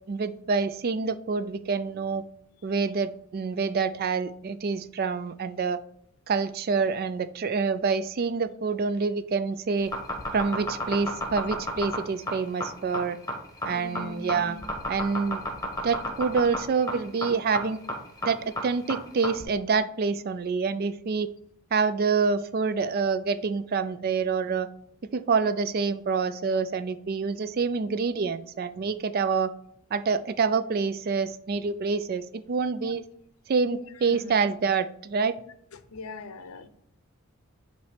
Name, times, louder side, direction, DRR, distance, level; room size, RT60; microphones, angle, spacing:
voice 1, 0.1-2.2 2.6-5.8 6.3-9.9 10.3-13.2 13.6-14.6 14.9-15.4 15.8-17.8 18.2-21.3 21.7-24.7 25.1-29.5 29.9-33.0 33.5-35.4, right 5 dB, 45° right, 13 dB, 0.4 m, -27 dB
sound 1, 9.8-19.4, left 1 dB, 15° left, 1.1 m, -32 dB
voice 2, 13.7-14.7 32.8-32.9 33.8-34.4 35.7-36.7, left 3 dB, 85° left, 11 dB, 0.6 m, -41 dB
8.1 x 3.1 x 4.9 m, 0.71 s
head